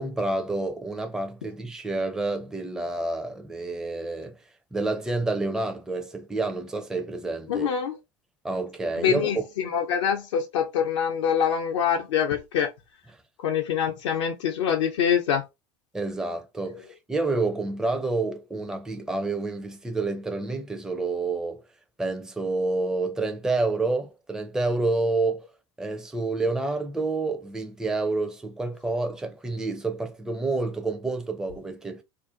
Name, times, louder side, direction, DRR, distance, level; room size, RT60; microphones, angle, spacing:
voice 1, 0.0-4.4 4.7-7.7 8.4-9.4 15.9-21.6 22.0-25.5 25.8-32.0, right 3 dB, 5° right, 0.4 m, -28 dB
voice 2, 7.5-7.9 9.0-12.7 13.4-15.4, left 8 dB, 70° left, 0.4 m, -25 dB
2.5 x 2.1 x 2.4 m
figure-of-eight pair, 75°, 15 cm